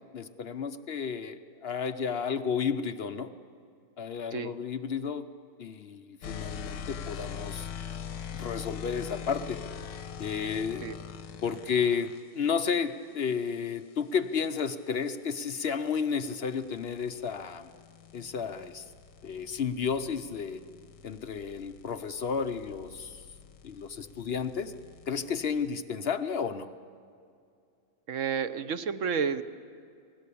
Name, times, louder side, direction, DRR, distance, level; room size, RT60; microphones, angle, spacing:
voice 1, 0.1-3.3 4.0-5.3 5.6-7.7 8.3-9.6 10.2-10.8 11.4-17.7 18.1-18.9 19.2-20.6 21.0-23.3 23.6-24.7 25.1-26.7, left 6 dB, 60° left, 9 dB, 0.6 m, -32 dB
sound 1, 6.2-12.2 14.7-25.7, left 7 dB, 85° left, 1.7 m, -43 dB
voice 2, 28.1-29.4, right 6 dB, 55° right, 12 dB, 0.9 m, -31 dB
30.0 x 19.5 x 8.4 m, 2.4 s
omnidirectional pair, 1.9 m